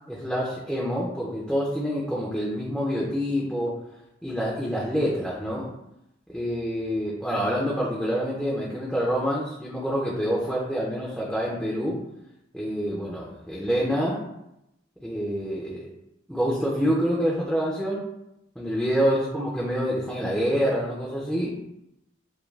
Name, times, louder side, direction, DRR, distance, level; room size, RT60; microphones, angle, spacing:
voice 1, 0.1-3.8 4.2-5.7 6.3-12.0 12.5-14.2 15.0-15.9 16.3-18.1 18.6-21.6, equal, ahead, -5 dB, 0.4 m, -27 dB
2.3 x 2.2 x 3.1 m, 0.84 s
head